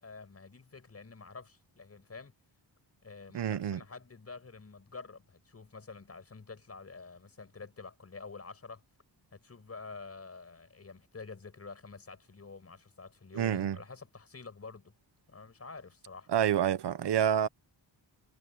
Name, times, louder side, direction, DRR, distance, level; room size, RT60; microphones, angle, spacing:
voice 1, 0.0-2.3 3.0-8.8 9.3-14.9 15.3-16.3, left 4 dB, 35° left, 5.7 m, -48 dB
voice 2, 3.3-3.8 13.3-13.8 16.3-17.5, right 9 dB, 65° right, 1.1 m, -28 dB
wide cardioid pair, 130°, 44 cm